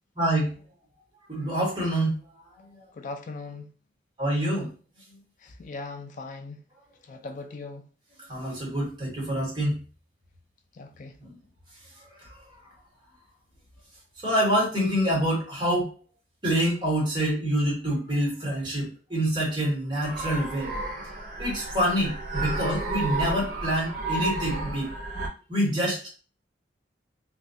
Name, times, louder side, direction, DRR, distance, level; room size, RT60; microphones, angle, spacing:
voice 1, 0.2-0.6 1.3-2.2 2.7-2.8 4.2-4.7 8.3-9.7 11.2-11.3 12.2-12.3 14.2-15.9 16.4-20.7 21.4-24.9 25.5-26.1, equal, 25° right, 1.1 m, -26 dB
voice 2, 2.9-3.7 5.4-6.6 7.0-7.9 10.7-11.2, left 3 dB, 45° left, 0.3 m, -39 dB
sound 1, 20.0-25.3, right 2 dB, 50° right, 0.5 m, -32 dB
2.2 x 2.2 x 2.6 m
head